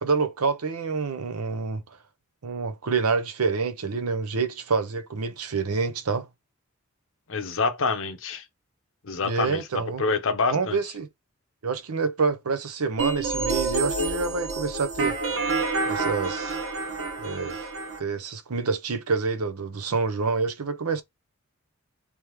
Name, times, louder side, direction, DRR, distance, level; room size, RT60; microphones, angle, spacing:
voice 1, 0.0-1.8 2.4-6.3 9.2-10.0 10.5-11.1 11.6-15.2 15.9-16.6 17.2-17.6 18.0-21.0, right 4 dB, 85° right, 0.7 m, -27 dB
voice 2, 7.3-8.4 9.0-10.8, left 4 dB, 60° left, 0.8 m, -27 dB
sound 1, 13.0-18.0, right 3 dB, 60° right, 1.3 m, -28 dB
3.5 x 3.5 x 3.0 m
head